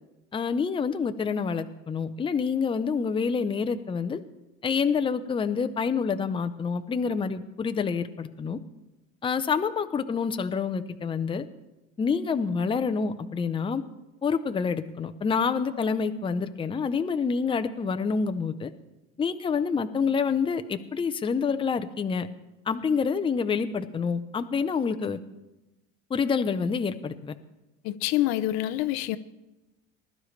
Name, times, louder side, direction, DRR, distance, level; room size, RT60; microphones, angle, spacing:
voice 1, 0.3-4.2 4.6-8.6 9.2-11.4 12.0-13.8 14.2-18.7 19.2-22.3 22.7-25.2 26.1-27.3, left 5 dB, 20° left, 0.7 m, -27 dB
voice 2, 27.8-29.2, left 14 dB, 65° left, 0.8 m, -26 dB
20.0 x 12.0 x 3.3 m
supercardioid pair, 105°, 29 cm